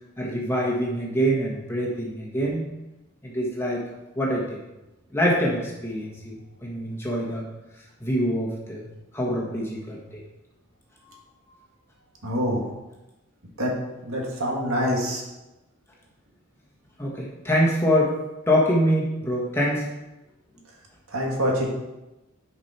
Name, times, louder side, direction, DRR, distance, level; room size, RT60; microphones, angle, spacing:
voice 1, 0.2-2.7 3.2-3.8 4.1-4.6 5.1-7.4 8.0-8.9 9.1-10.2 17.0-18.1 18.5-19.9, equal, 10° left, -3 dB, 1.5 m, -25 dB
voice 2, 12.2-12.7 13.6-13.7 14.1-15.2 21.1-21.7, equal, 80° right, -1 dB, 2.0 m, -25 dB
10.0 x 5.3 x 4.4 m, 1.0 s
head